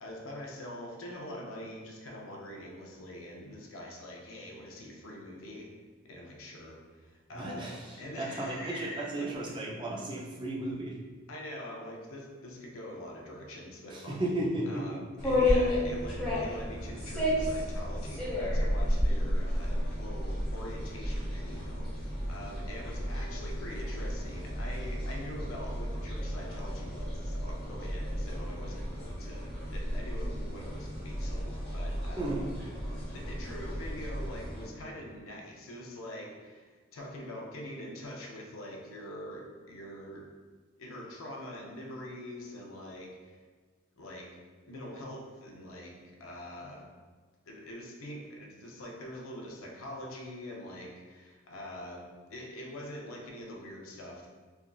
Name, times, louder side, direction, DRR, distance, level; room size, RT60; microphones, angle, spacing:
voice 1, 0.0-5.7 6.0-7.7 8.0-9.6 10.1-10.6 11.3-14.3 14.7-32.3 33.1-40.3 40.8-43.4 44.0-44.3 44.7-46.9 47.5-54.3, left 1 dB, 85° left, -1 dB, 0.6 m, -44 dB
voice 2, 7.3-10.9 13.9-15.0 32.2-32.5, right 1 dB, 25° right, -4 dB, 0.4 m, -34 dB
sound 1, 15.2-34.7, left 1 dB, 5° left, 0.8 m, -33 dB
3.3 x 2.5 x 2.2 m, 1.4 s
head